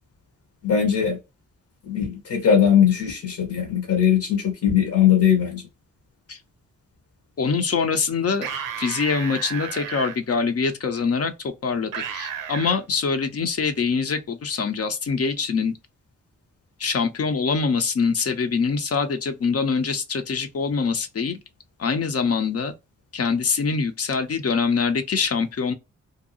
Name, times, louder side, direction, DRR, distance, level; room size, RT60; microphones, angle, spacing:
voice 1, 0.6-1.2 1.9-5.6, left 8 dB, 65° left, 0.9 m, -20 dB
voice 2, 7.4-8.5 8.8-15.7 16.8-21.4 21.8-22.7 23.1-25.7, left 5 dB, 50° left, 0.6 m, -24 dB
sound 1, 8.3-10.1 11.9-12.8, right 8 dB, 90° right, 0.5 m, -32 dB
2.7 x 2.3 x 2.6 m
supercardioid pair, 40°, 32 cm